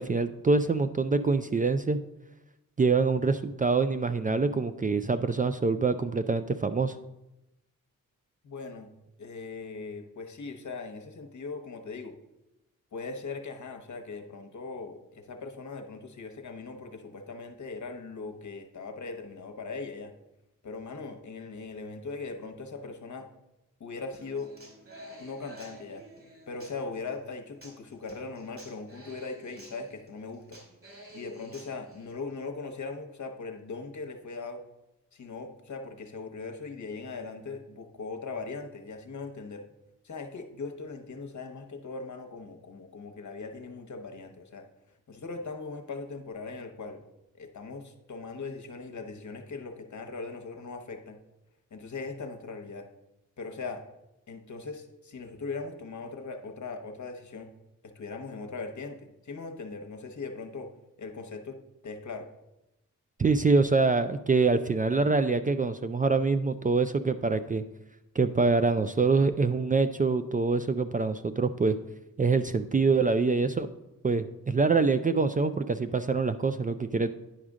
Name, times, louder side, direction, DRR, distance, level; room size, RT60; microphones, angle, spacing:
voice 1, 0.0-2.0 2.8-6.9 63.2-67.6 68.2-71.7 72.2-73.7 74.0-77.1, right 4 dB, 25° right, 10 dB, 0.3 m, -25 dB
voice 2, 8.4-8.9 9.2-12.1 12.9-20.1 20.6-23.3 23.8-24.5 25.2-26.0 26.5-30.6 31.1-34.6 35.1-39.6 40.0-44.6 45.1-47.0 47.3-51.2 51.7-52.9 53.4-53.8 54.3-57.5 57.8-60.7 61.0-62.3, left 4 dB, 60° left, 6 dB, 1.0 m, -39 dB
Human voice / Acoustic guitar, 24.1-32.1, equal, 40° right, 2.3 m, -51 dB
10.0 x 4.9 x 3.6 m, 0.92 s
cardioid pair, 60°, 33 cm